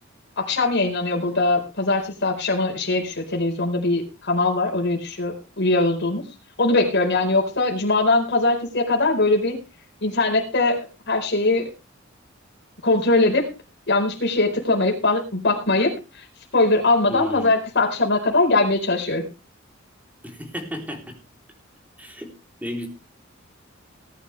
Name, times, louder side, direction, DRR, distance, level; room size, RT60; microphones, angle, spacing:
voice 1, 0.4-6.2 6.6-9.6 10.0-11.7 12.8-13.5 13.9-16.2 16.5-19.3, left 2 dB, 60° left, 1 dB, 4.5 m, -21 dB
voice 2, 17.1-17.5 20.2-21.2 22.0-22.3 22.6-22.9, equal, 10° right, 3 dB, 3.4 m, -32 dB
19.5 x 10.5 x 3.3 m, 0.30 s
head